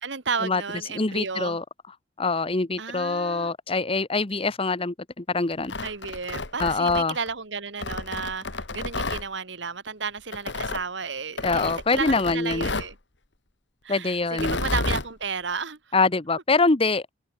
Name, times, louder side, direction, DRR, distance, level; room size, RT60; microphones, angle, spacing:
voice 1, 0.0-1.6 2.8-3.5 5.8-12.9 13.8-15.8, right 5 dB, 70° right, 1.9 m, -33 dB
voice 2, 0.9-1.6 2.2-5.7 6.6-7.2 11.4-12.7 13.9-14.6 15.9-17.0, left 3 dB, 30° left, 1.1 m, -24 dB
Tearing, 5.5-7.3 7.8-9.2 10.3-10.8 11.4-12.9 14.3-15.1, left 3 dB, 65° left, 2.3 m, -30 dB
head